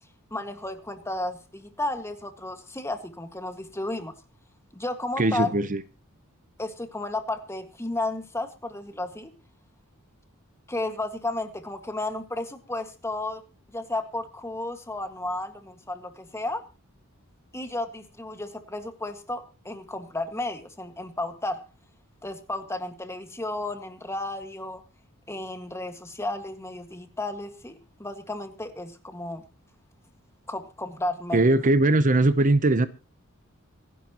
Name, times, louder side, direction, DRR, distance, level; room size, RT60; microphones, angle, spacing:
voice 1, 0.3-4.1 4.7-5.5 6.6-9.3 10.7-13.4 13.7-16.6 17.5-21.7 22.2-24.8 25.3-29.4 30.5-31.4, left 2 dB, 15° left, 1.8 m, -33 dB
voice 2, 5.2-5.8 31.3-32.9, right 2 dB, 40° right, 0.8 m, -20 dB
26.0 x 11.0 x 3.0 m
head